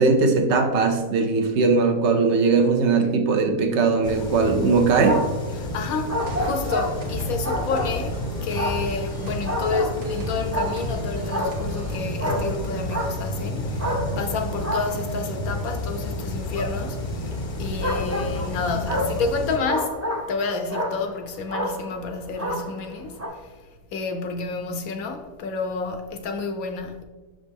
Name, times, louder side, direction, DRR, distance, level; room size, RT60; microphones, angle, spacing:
voice 1, 0.0-5.2, right 4 dB, 55° right, 0.8 m, -19 dB
sound 1, 4.0-19.6, left 1 dB, 45° left, 0.7 m, -31 dB
sound 2, 4.6-5.5 6.1-8.2 8.5-10.1 10.5-11.0 11.3-13.4 13.8-15.7 16.5-16.7 17.8-20.4 20.7-21.2 21.5-22.0 22.4-22.9 23.2-23.3, equal, 25° right, 0.3 m, -29 dB
voice 2, 5.5-20.0 20.3-23.6 23.9-27.0, left 4 dB, 70° left, 1.0 m, -30 dB
sound 3, 6.2-12.8, left 1 dB, 80° right, 1.6 m, -36 dB
6.2 x 5.1 x 3.4 m
omnidirectional pair, 1.8 m